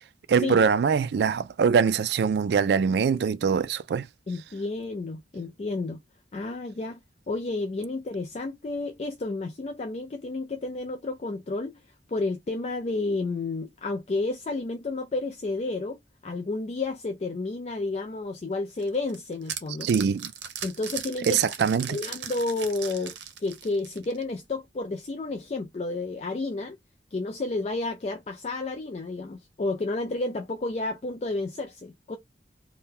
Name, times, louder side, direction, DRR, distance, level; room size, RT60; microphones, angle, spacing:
voice 1, 0.3-4.1 19.8-20.3 21.3-22.0, right 6 dB, 70° right, 0.3 m, -23 dB
voice 2, 4.3-6.0 6.3-7.0 7.3-11.8 12.1-19.9 20.6-21.4 21.9-23.1 23.4-26.8 27.1-32.2, left 3 dB, 35° left, 0.4 m, -31 dB
sound 1, 18.8-24.3, right 9 dB, 90° right, 0.7 m, -38 dB
2.8 x 2.2 x 3.6 m
head